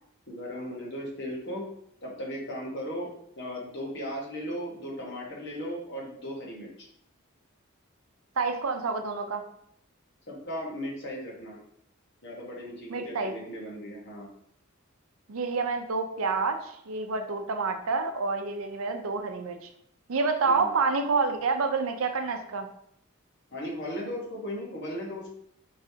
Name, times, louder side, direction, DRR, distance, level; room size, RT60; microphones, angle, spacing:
voice 1, 0.3-1.7 2.0-6.9 10.3-11.6 12.2-14.3 20.4-20.7 23.5-25.3, equal, 55° left, -2 dB, 1.2 m, -37 dB
voice 2, 8.4-9.4 12.9-13.3 15.3-19.7 20.1-22.7, right 4 dB, 80° right, 5 dB, 0.6 m, -28 dB
5.0 x 3.1 x 2.7 m, 0.71 s
head